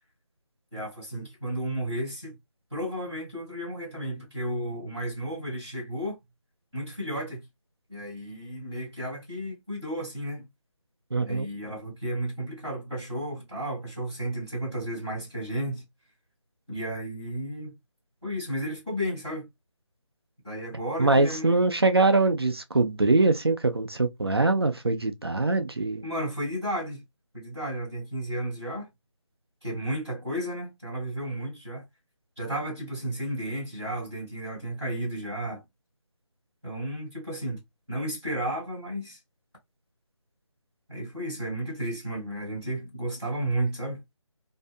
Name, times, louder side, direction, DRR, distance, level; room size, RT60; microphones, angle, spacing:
voice 1, 0.7-2.4 2.7-6.2 6.7-7.4 7.9-10.5 11.2-15.8 16.7-17.7 18.2-19.5 20.4-21.6 26.0-27.0 27.3-28.9 29.6-31.8 32.4-35.6 36.6-37.6 37.9-39.2 40.9-44.1, right 1 dB, 5° left, 0.9 m, -33 dB
voice 2, 11.1-11.5 21.0-26.0, right 3 dB, 50° right, 0.4 m, -23 dB
2.6 x 2.3 x 2.5 m
figure-of-eight pair, 180°, 16 cm